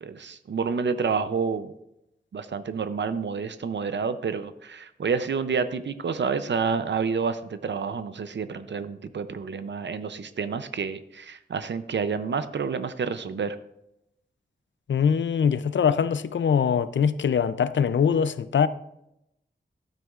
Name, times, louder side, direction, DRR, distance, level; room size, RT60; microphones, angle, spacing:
voice 1, 0.0-1.7 2.3-13.6, right 5 dB, 75° right, 0.5 m, -29 dB
voice 2, 14.9-18.7, left 7 dB, 80° left, 0.4 m, -22 dB
12.5 x 9.0 x 2.4 m
wide cardioid pair, 100°, 19 cm